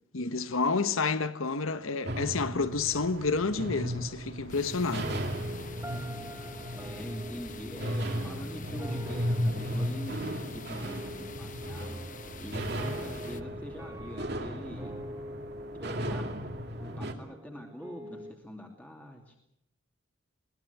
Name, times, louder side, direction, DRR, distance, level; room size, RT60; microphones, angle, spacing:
voice 1, 0.1-5.1, left 4 dB, 85° left, 1.2 m, -29 dB
sound 1, 2.0-17.1, equal, 50° right, 2.4 m, -36 dB
sound 2, 4.5-13.4, left 6 dB, 40° left, 1.0 m, -48 dB
sound 3, 5.0-18.3, equal, 15° right, 1.4 m, -45 dB
voice 2, 6.7-14.9 15.7-16.6 17.0-19.4, equal, 5° left, 2.6 m, -44 dB
21.5 x 20.0 x 8.5 m
head